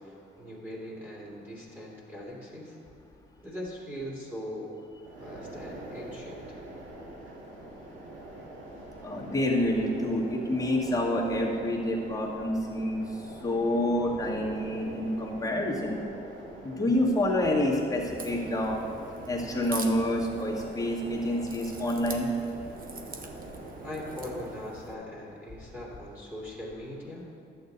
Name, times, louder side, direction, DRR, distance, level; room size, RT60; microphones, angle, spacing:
voice 1, 0.0-2.8 3.4-4.8 5.2-6.6 23.8-27.3, left 1 dB, 10° right, -5 dB, 2.6 m, -40 dB
sound 1, 5.0-24.6, right 1 dB, 75° right, 2.0 m, -44 dB
voice 2, 9.0-13.0 13.4-16.0 16.6-18.8 19.3-22.3, left 1 dB, 15° left, -3 dB, 1.9 m, -28 dB
Crack, 18.0-24.9, right 5 dB, 45° right, 0.9 m, -44 dB
11.5 x 8.0 x 4.0 m, 2.6 s
cardioid pair, 90°, 20 cm